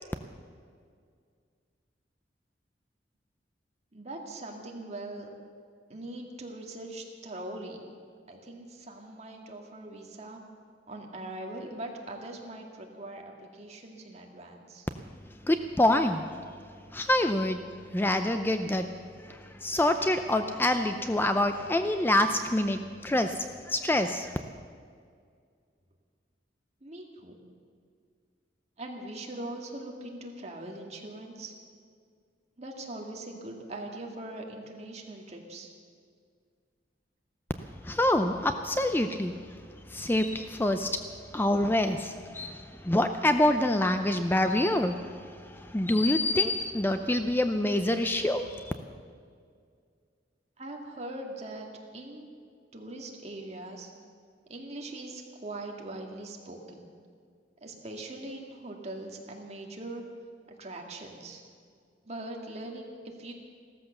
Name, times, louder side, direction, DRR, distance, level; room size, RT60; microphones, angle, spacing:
voice 1, 3.9-5.3 5.9-7.8 8.3-10.4 10.9-14.9 26.8-27.4 28.8-31.5 32.6-35.7 50.6-51.7 51.9-52.3 52.7-53.9 54.5-56.9 57.6-60.0 60.6-61.4 62.1-63.3, right 1 dB, 40° right, 1 dB, 2.0 m, -41 dB
voice 2, 15.4-16.3 16.9-17.6 17.9-18.9 19.2-24.4 37.8-39.6 39.9-40.9 41.3-48.7, left 1 dB, 10° left, 8 dB, 0.5 m, -26 dB
15.5 x 13.5 x 6.7 m, 2.1 s
head